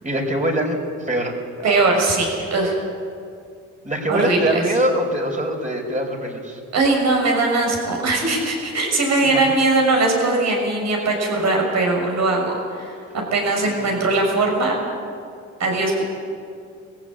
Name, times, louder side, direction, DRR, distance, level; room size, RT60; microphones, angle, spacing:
voice 1, 0.0-1.3 1.6-1.7 3.8-6.6 9.2-9.5 13.6-13.8, right 1 dB, 25° right, 2 dB, 4.8 m, -23 dB
voice 2, 1.6-2.8 4.1-4.5 6.7-14.7 15.6-16.1, right 2 dB, 65° right, 1 dB, 6.6 m, -20 dB
22.0 x 15.5 x 8.9 m, 2.3 s
cardioid pair, 90°, 30 cm